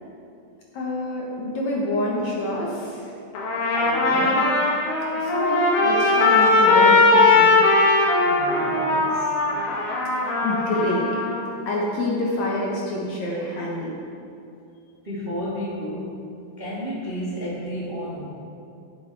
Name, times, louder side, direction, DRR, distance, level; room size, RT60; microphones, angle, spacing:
voice 1, 0.7-3.1 5.2-7.5 10.4-11.1 11.7-13.9, left 1 dB, 60° left, -3 dB, 2.1 m, -27 dB
Trumpet, 3.3-11.4, left 2 dB, 85° left, 3.7 m, -19 dB
voice 2, 3.7-4.5 8.2-9.3 15.0-16.1 16.6-18.3, equal, 25° right, -7 dB, 1.1 m, -32 dB
15.0 x 7.7 x 4.7 m, 2.6 s
omnidirectional pair, 4.3 m